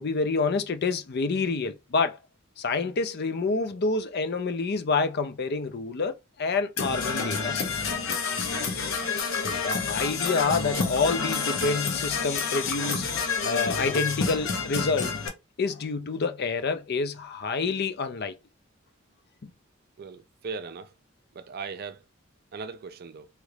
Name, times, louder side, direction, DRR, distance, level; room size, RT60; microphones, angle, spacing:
voice 1, 0.0-2.2 2.6-8.2 9.4-15.2 15.6-18.4 19.4-19.5, left 4 dB, 50° left, 0.5 m, -28 dB
Percussion / Brass instrument, 6.8-15.3, left 5 dB, 70° left, 0.8 m, -29 dB
voice 2, 20.0-20.9 21.3-22.0 22.5-23.3, right 5 dB, 45° right, 0.4 m, -38 dB
3.1 x 2.4 x 3.2 m
head